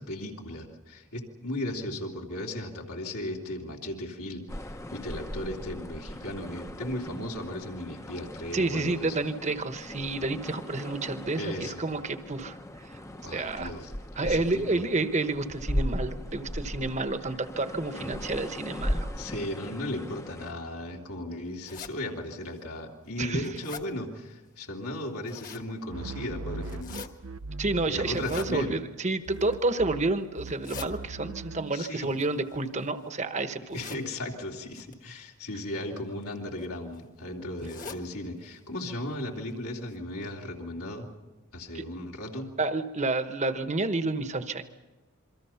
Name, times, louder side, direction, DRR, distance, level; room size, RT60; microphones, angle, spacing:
voice 1, 0.0-4.4 4.9-9.2 11.4-11.8 13.2-13.9 14.2-14.8 19.1-27.0 27.8-28.8 31.7-32.1 33.7-41.1 41.5-42.5, left 1 dB, 75° left, -1 dB, 3.0 m, -36 dB
sound 1, 4.5-20.5, equal, 15° left, 0.8 m, -38 dB
voice 2, 8.5-12.9 13.3-13.7 14.2-19.1 23.2-23.5 27.6-33.8 41.7-41.8 42.6-44.6, right 2 dB, 30° right, 9 dB, 1.1 m, -30 dB
sound 2, 21.6-21.9 22.6-22.7 23.1-23.9 25.0-25.7 26.6-27.1 28.1-28.5 29.2-29.7 30.4-30.9 32.0-33.0 33.7-34.0 34.7-34.9 36.0-36.2 36.6-36.7 36.9-37.0 37.6-38.0 38.4-38.5 38.8-38.9 39.5-39.6 39.9-40.0, left 5 dB, 35° left, 1.4 m, -43 dB
sound 3, 25.9-29.0 29.3-31.8, right 3 dB, 75° right, 0.7 m, -40 dB
28.0 x 23.0 x 5.8 m, 1.2 s
head